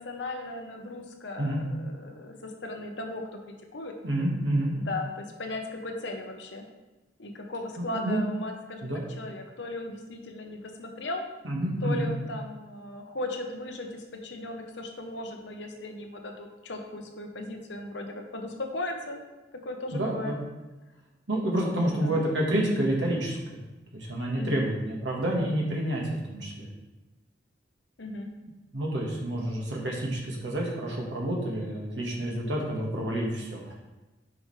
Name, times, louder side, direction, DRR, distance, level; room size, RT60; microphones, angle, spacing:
voice 1, 0.0-3.9 4.7-6.6 7.2-8.9 9.2-11.2 11.8-19.2 19.6-20.4 21.6-22.2 24.3-24.7 28.0-28.3, left 2 dB, 70° left, 3 dB, 1.0 m, -37 dB
voice 2, 4.0-4.7 7.8-8.2 8.8-9.0 11.4-12.1 19.9-20.4 21.3-23.6 23.9-26.0 26.3-26.7 28.7-33.6, right 1 dB, 70° right, -3 dB, 1.6 m, -29 dB
8.8 x 4.9 x 3.3 m, 1.1 s
head